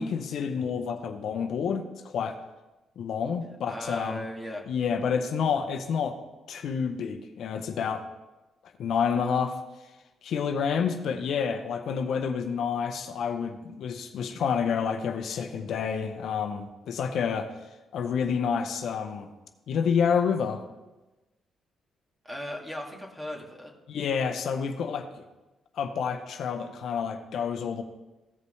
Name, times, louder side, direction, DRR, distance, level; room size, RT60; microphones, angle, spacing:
voice 1, 0.0-2.4 3.0-4.2 4.7-6.2 6.5-8.0 8.8-9.6 10.2-17.5 17.9-19.3 19.7-20.6 23.9-25.1 25.8-27.8, left 6 dB, 70° left, 7 dB, 0.7 m, -29 dB
voice 2, 3.7-4.7 22.2-23.7, equal, 10° right, 1 dB, 1.8 m, -37 dB
15.5 x 5.3 x 3.3 m, 1.1 s
cardioid pair, 90°, 0 cm